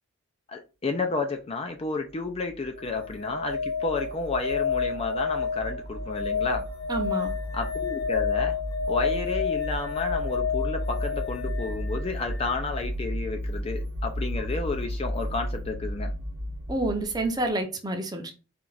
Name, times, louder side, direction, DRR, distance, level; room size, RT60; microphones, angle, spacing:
voice 1, 0.5-6.6 7.5-8.6 8.9-16.1, left 3 dB, 30° left, 0.4 m, -31 dB
sound 1, 2.2-17.5, equal, 85° right, 0.8 m, -34 dB
sound 2, 2.8-12.6 14.9-15.0, left 6 dB, 90° left, 2.3 m, -30 dB
voice 2, 6.9-7.3 16.7-18.3, right 2 dB, 20° right, 0.7 m, -28 dB
4.4 x 2.4 x 3.9 m
head